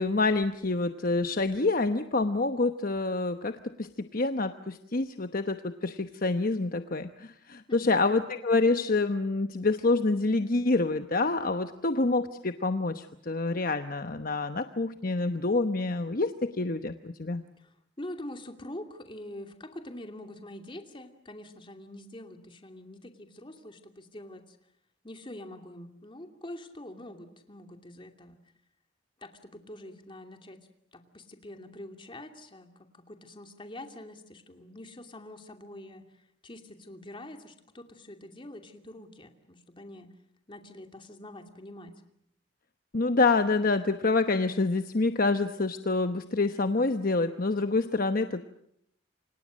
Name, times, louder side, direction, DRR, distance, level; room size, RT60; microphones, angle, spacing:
voice 1, 0.0-17.4 42.9-48.4, left 3 dB, 50° left, 8 dB, 1.0 m, -27 dB
voice 2, 7.7-8.1 17.6-24.6 25.0-28.4 29.2-30.6 30.9-40.1 40.5-41.9, left 1 dB, 25° left, 5 dB, 2.7 m, -45 dB
29.0 x 26.0 x 6.4 m, 0.73 s
head